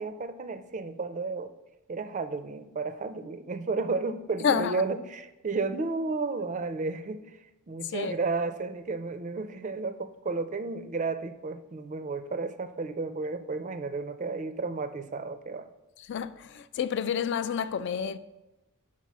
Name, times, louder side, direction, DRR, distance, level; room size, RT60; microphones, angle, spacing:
voice 1, 0.0-1.5 1.9-7.3 7.7-15.7, right 3 dB, 35° right, 0.4 m, -32 dB
voice 2, 4.4-4.8 7.9-8.1 16.1-18.2, left 7 dB, 50° left, 0.3 m, -29 dB
5.7 x 4.7 x 6.0 m
head